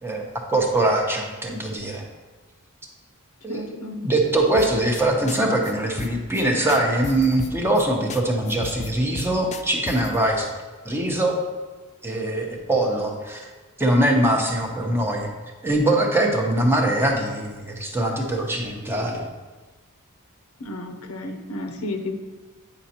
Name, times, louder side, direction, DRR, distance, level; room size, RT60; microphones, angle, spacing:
voice 1, 0.0-2.0 3.4-10.5 10.8-11.4 12.0-13.5 13.8-15.3 15.6-19.3, right 1 dB, 10° right, 1 dB, 0.8 m, -22 dB
voice 2, 3.5-4.0 20.6-22.1, left 2 dB, 75° left, 6 dB, 0.7 m, -32 dB
sound 1, 4.6-5.0 5.3-5.4 5.6-5.7 6.0-6.4 6.7-7.8 8.1-8.2 8.5-10.2, left 5 dB, 30° left, 0.3 m, -35 dB
8.9 x 5.1 x 2.9 m, 1.3 s
head